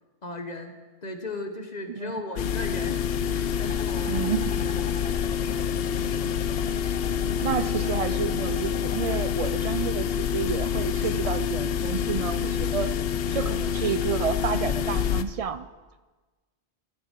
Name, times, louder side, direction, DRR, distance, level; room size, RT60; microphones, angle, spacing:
voice 1, 0.2-0.7 1.0-5.4, left 2 dB, 35° left, 6 dB, 1.3 m, -38 dB
sound 1, 2.4-15.2, left 8 dB, 60° left, 0.8 m, -27 dB
sound 2, 3.7-9.3, left 2 dB, 10° left, 0.4 m, -43 dB
voice 2, 4.1-4.5 7.4-12.9 13.3-15.7, right 7 dB, 55° right, 13 dB, 0.4 m, -30 dB
sound 3, 7.0-10.0 10.2-13.2, left 4 dB, 85° left, 1.7 m, -47 dB
14.0 x 14.0 x 4.6 m, 1.3 s
omnidirectional pair, 1.2 m